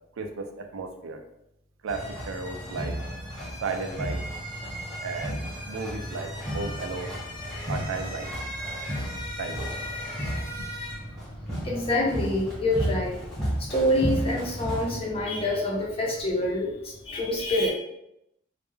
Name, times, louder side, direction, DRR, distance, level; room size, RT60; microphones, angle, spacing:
voice 1, 0.2-1.2 1.8-3.0 3.6-4.2 5.0-7.1 7.7-8.3 9.4-9.7, right 4 dB, 85° right, 5 dB, 0.4 m, -34 dB
sound 1, 1.9-14.9, equal, ahead, 0.8 m, -33 dB
voice 2, 11.6-13.2 13.6-17.7, left 1 dB, 30° left, -2 dB, 0.5 m, -26 dB
2.2 x 2.1 x 3.1 m, 0.82 s
head